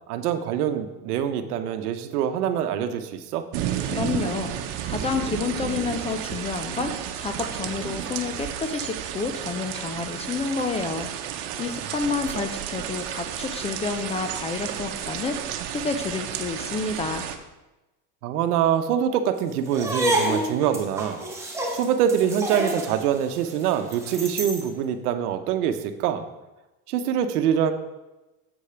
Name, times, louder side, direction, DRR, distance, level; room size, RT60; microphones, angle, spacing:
voice 1, 0.1-3.4 18.2-21.3 21.7-26.2 26.9-27.7, right 9 dB, 90° right, 8 dB, 0.9 m, -24 dB
sound 1, 3.5-17.4, right 10 dB, 65° right, 1.0 m, -32 dB
voice 2, 3.9-4.5 4.8-17.3, left 4 dB, 15° left, 6 dB, 0.3 m, -29 dB
sound 2, 19.7-24.7, right 1 dB, 5° right, 1.5 m, -28 dB
7.9 x 4.9 x 5.7 m, 1.0 s
supercardioid pair, 125°, 44 cm